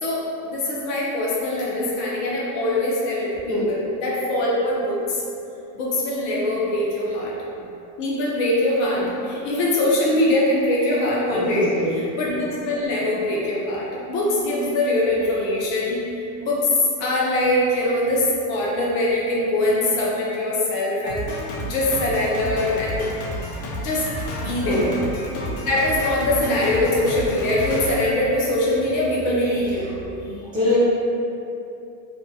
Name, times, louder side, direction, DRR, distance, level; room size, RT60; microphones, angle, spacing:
voice 1, 0.0-5.2 5.7-7.3 8.0-16.7 17.0-23.1 23.7-24.1 24.4-24.9 25.7-29.9, left 1 dB, 40° left, -5 dB, 0.5 m, -23 dB
voice 2, 11.3-11.9 24.6-24.8 30.2-30.8, left 2 dB, 10° right, -12 dB, 0.6 m, -24 dB
Drum kit, 21.1-28.9, equal, 75° left, 0.7 m, -31 dB
2.6 x 2.6 x 2.6 m, 2.7 s
supercardioid pair, 170°, 45 cm